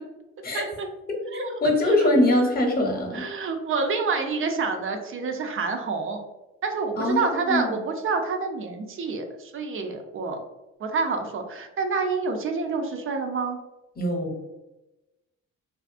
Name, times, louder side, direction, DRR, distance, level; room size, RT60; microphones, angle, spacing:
voice 1, 0.5-0.9 1.3-2.1 3.1-6.2 6.6-10.4 10.8-13.6, right 4 dB, 45° right, 5 dB, 0.5 m, -28 dB
voice 2, 1.6-3.2 7.0-7.7 14.0-14.3, left 1 dB, 30° left, 1 dB, 0.8 m, -23 dB
2.5 x 2.4 x 2.4 m, 1.0 s
cardioid pair, 90°, 30 cm